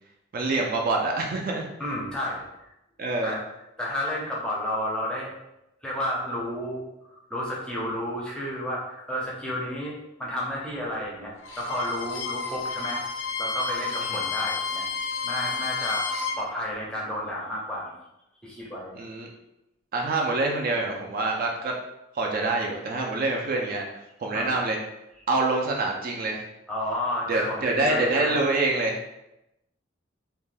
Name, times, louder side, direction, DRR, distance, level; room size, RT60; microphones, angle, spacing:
voice 1, 0.3-1.7 3.0-3.4 14.1-14.2 18.9-19.3 19.9-21.7 22.1-23.8 24.2-24.8 25.3-26.4 27.3-29.0, right 2 dB, 50° right, 0 dB, 0.4 m, -26 dB
voice 2, 1.8-2.7 3.2-3.4 3.8-5.3 5.8-6.8 7.1-13.0 13.4-14.8 15.2-18.0 18.4-19.0 24.3-24.6 26.7-28.4, left 1 dB, 5° left, -4 dB, 0.5 m, -31 dB
Bowed string instrument, 11.4-16.4, left 5 dB, 75° left, 0.4 m, -31 dB
2.5 x 2.2 x 3.2 m, 0.89 s
head